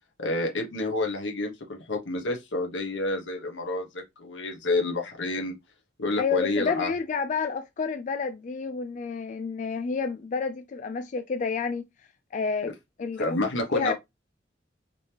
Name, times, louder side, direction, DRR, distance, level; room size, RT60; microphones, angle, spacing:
voice 1, 0.2-5.5 6.0-6.9 12.6-12.7 13.2-13.9, left 2 dB, 85° left, 1.2 m, -29 dB
voice 2, 6.2-11.9 12.3-12.7 13.0-13.4 13.7-13.9, left 5 dB, 45° left, 0.3 m, -29 dB
3.9 x 3.4 x 2.9 m
head